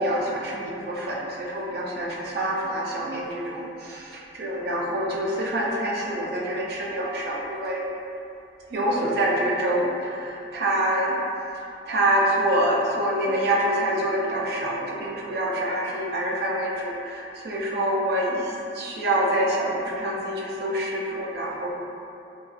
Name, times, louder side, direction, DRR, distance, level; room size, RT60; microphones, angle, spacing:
voice 1, 0.0-7.9 8.7-11.1 11.9-21.7, right 1 dB, 65° right, -2 dB, 0.4 m, -26 dB
2.3 x 2.2 x 2.3 m, 2.8 s
head